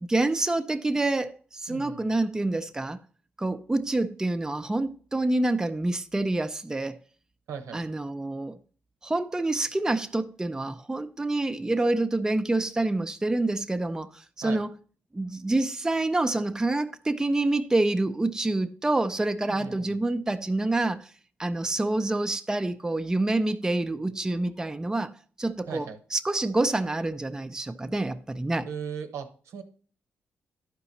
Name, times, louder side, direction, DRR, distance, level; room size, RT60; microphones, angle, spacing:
voice 1, 0.0-3.0 3.4-7.0 7.7-8.6 9.0-14.7 15.1-21.1 21.4-28.7, right 2 dB, 15° right, 0.5 m, -27 dB
voice 2, 1.7-2.1 7.5-7.8 14.4-14.6 19.4-20.0 25.7-26.0 28.7-29.6, right 6 dB, 90° right, 1.0 m, -38 dB
11.5 x 4.8 x 4.1 m
cardioid pair, 95°, 5 cm